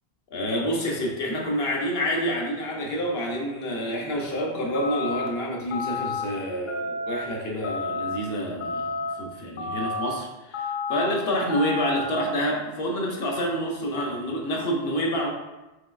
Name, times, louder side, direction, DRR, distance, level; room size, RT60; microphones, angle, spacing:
voice 1, 0.3-15.3, equal, 75° left, -1 dB, 1.1 m, -28 dB
sound 1, 4.7-5.3 5.7-6.2 6.7-7.2 7.6-8.2 8.6-9.1 9.6-10.1 10.5-11.1 11.5-12.0, left 3 dB, 55° left, 0.7 m, -30 dB
4.9 x 3.9 x 2.4 m, 1.0 s
omnidirectional pair, 1.0 m